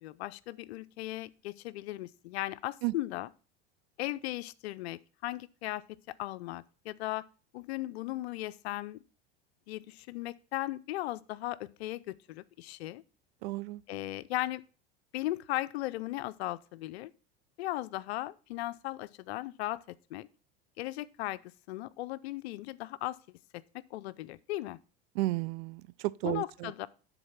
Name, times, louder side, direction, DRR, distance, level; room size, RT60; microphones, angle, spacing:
voice 1, 0.0-3.3 4.0-7.3 7.5-9.0 9.7-13.0 13.9-14.6 15.1-17.1 17.6-20.3 20.8-23.2 23.5-23.6 23.9-24.8 26.2-26.9, left 16 dB, 80° left, 0.5 m, -37 dB
voice 2, 13.4-13.8 25.2-26.7, right 19 dB, 70° right, 0.5 m, -33 dB
10.0 x 4.1 x 5.8 m
hypercardioid pair, 100°, 31 cm